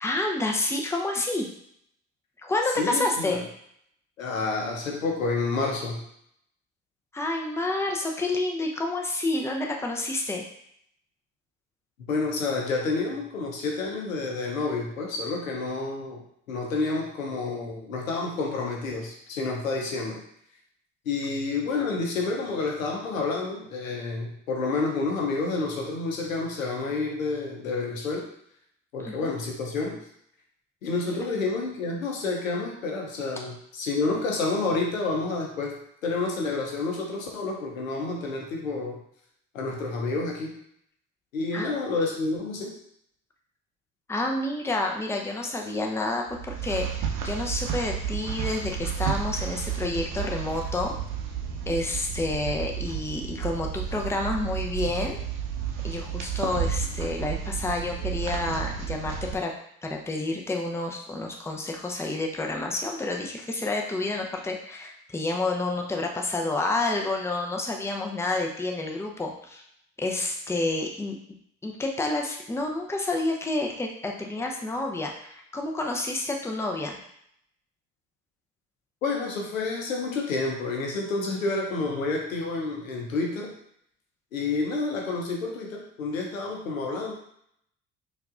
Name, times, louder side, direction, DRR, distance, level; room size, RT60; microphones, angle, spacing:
voice 1, 0.0-1.5 2.4-3.4 7.1-10.4 29.0-29.3 41.5-41.7 44.1-50.9 51.7-55.2 55.8-59.5 59.8-69.6 70.0-71.2 71.6-77.0, left 2 dB, 5° left, 1 dB, 0.6 m, -29 dB
voice 2, 2.8-3.3 4.2-6.0 12.1-16.2 16.5-20.2 21.1-28.3 28.9-30.0 30.8-39.0 39.5-40.6 41.3-42.8 79.0-83.5 84.3-87.2, left 3 dB, 90° left, 0 dB, 0.7 m, -29 dB
sound 1, 46.3-59.3, right 8 dB, 50° right, 0.7 m, -32 dB
4.5 x 2.5 x 2.4 m, 0.69 s
hypercardioid pair, 55°, 39 cm